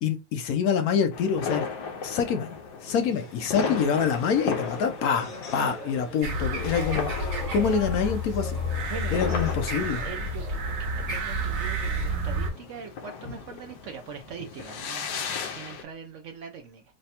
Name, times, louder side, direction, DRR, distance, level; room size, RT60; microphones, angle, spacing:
voice 1, 0.0-1.7 2.0-2.5 2.8-8.6 9.1-10.0, left 6 dB, 70° left, 1.0 m, -26 dB
sound 1, 1.1-15.8, left 5 dB, 90° left, 1.2 m, -36 dB
sound 2, 2.9-9.6, left 2 dB, 40° left, 0.8 m, -41 dB
sound 3, 6.2-12.5, equal, 55° right, 1.2 m, -30 dB
voice 2, 8.9-9.4 10.0-10.6 10.9-15.2 15.5-16.8, right 7 dB, 75° right, 0.7 m, -41 dB
3.3 x 2.1 x 4.1 m
omnidirectional pair, 1.8 m